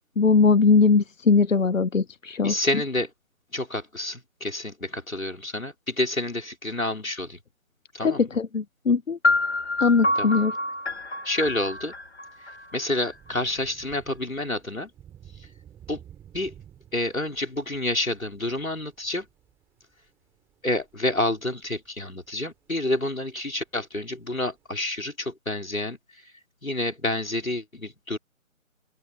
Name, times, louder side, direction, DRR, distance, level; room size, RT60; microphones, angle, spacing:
voice 1, 0.2-2.7 8.0-9.2 9.8-10.5, left 4 dB, 70° left, 0.9 m, -20 dB
voice 2, 2.4-3.1 3.5-7.4 7.9-8.3 10.2-10.3 11.2-11.9 12.4-14.9 15.4-15.5 15.9-16.0 16.3-16.5 16.9-19.3 20.6-26.0 26.6-28.2, left 1 dB, 85° left, 4.7 m, -29 dB
sound 1, 9.2-13.1, left 2 dB, 50° left, 2.0 m, -27 dB
Thunder / Rain, 12.3-24.7, right 10 dB, 5° right, 2.8 m, -54 dB
open air
figure-of-eight pair, 155°, 40 cm